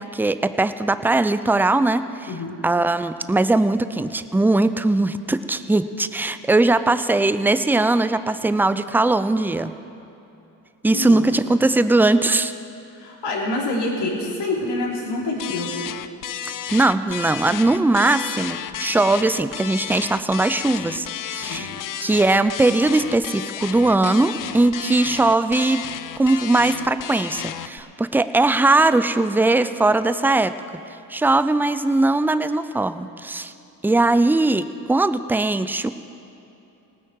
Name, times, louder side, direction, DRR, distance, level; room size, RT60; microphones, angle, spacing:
voice 1, 0.0-2.3 2.6-9.7 10.8-12.5 16.7-21.7 22.0-25.9 26.2-30.5 31.1-33.5 33.8-35.9, right 2 dB, 5° right, 13 dB, 0.5 m, -20 dB
voice 2, 2.3-2.6 10.9-11.3 12.9-15.7 21.5-21.7, left 2 dB, 60° left, -3 dB, 3.3 m, -26 dB
sound 1, 15.4-27.8, left 10 dB, 45° left, 0.6 m, -32 dB
19.0 x 9.3 x 4.8 m, 2.9 s
hypercardioid pair, 55°, 45 cm